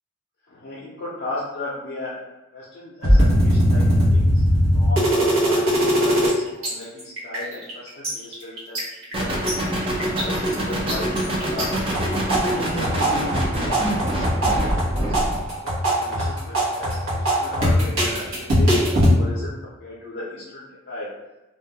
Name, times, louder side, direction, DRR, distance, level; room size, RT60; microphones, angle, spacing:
voice 1, 0.5-2.2 2.5-4.4 4.7-11.1 11.4-11.8 12.4-14.6 14.9-15.1 15.6-18.8 19.0-21.1, left 2 dB, 50° left, -8 dB, 0.5 m, -36 dB
sound 1, 3.0-6.3 6.6-6.7 7.0-7.7 8.0-9.5 10.0-10.5 10.9-11.6 11.9-19.1, equal, 90° right, 0.8 m, -20 dB
sound 2, 9.1-15.5, right 1 dB, 25° right, 0.4 m, -25 dB
2.2 x 2.1 x 2.7 m, 1.0 s
head